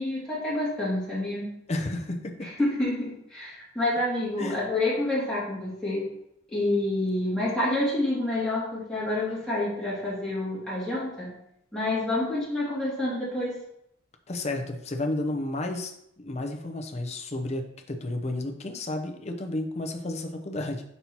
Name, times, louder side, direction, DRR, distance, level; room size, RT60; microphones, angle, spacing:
voice 1, 0.0-1.5 2.7-6.1 6.5-11.3 11.7-13.5, left 1 dB, 5° left, -10 dB, 2.4 m, -28 dB
voice 2, 1.7-2.5 4.4-4.6 14.3-15.9 16.2-20.8, left 2 dB, 30° left, 4 dB, 0.6 m, -32 dB
5.8 x 5.4 x 2.9 m, 0.76 s
head